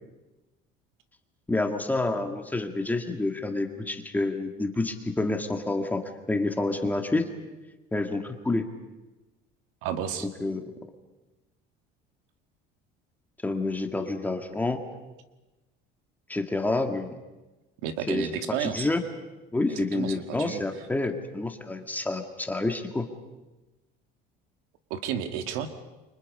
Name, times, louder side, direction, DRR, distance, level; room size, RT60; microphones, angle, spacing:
voice 1, 1.5-7.3 7.9-8.7 10.2-10.7 13.4-14.8 16.3-17.1 18.1-18.3 18.6-19.0 19.5-23.1, left 2 dB, 10° left, 5 dB, 1.9 m, -28 dB
voice 2, 9.8-10.3 17.8-18.9 19.7-20.6 24.9-25.7, right 9 dB, 80° right, 8 dB, 2.2 m, -32 dB
29.5 x 24.5 x 5.5 m, 1.1 s
cardioid pair, 135°, 21 cm